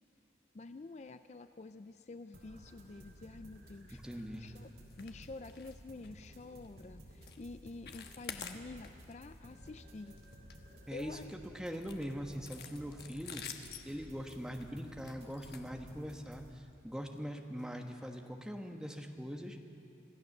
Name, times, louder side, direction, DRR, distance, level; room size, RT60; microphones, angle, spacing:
voice 1, 0.5-4.7 5.0-10.2 10.9-11.3, left 3 dB, 40° left, 10 dB, 0.4 m, -49 dB
sound 1, 2.3-16.5, equal, 65° right, 3.9 m, -55 dB
voice 2, 3.9-4.5 10.9-11.2 11.5-19.6, equal, 5° right, 3 dB, 1.1 m, -42 dB
sound 2, 4.9-5.2 5.4-5.8 6.0-6.2 6.6-6.8 7.2-7.4 7.7-9.1 9.5-9.7 10.1-11.2 11.7-16.3 17.1-17.2 17.6-17.7 18.1-18.2, left 7 dB, 65° left, 1.2 m, -49 dB
26.0 x 15.5 x 6.6 m, 2.6 s
head